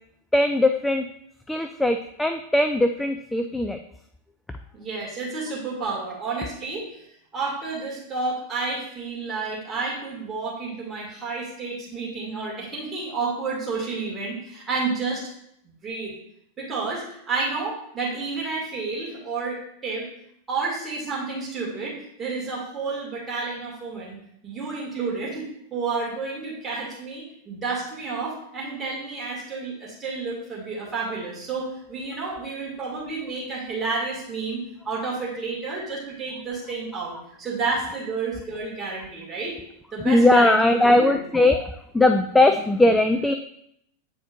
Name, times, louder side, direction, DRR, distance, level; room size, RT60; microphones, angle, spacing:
voice 1, 0.3-1.1 1.5-3.8 40.0-43.3, left 2 dB, 5° left, 6 dB, 0.3 m, -19 dB
voice 2, 4.7-7.1 7.3-15.2 15.6-16.1 16.6-20.1 20.5-24.2 24.4-39.6 39.9-41.2 41.5-41.6, right 4 dB, 20° right, -5 dB, 2.2 m, -30 dB
8.9 x 4.2 x 2.6 m, 0.72 s
figure-of-eight pair, 90°, 0 cm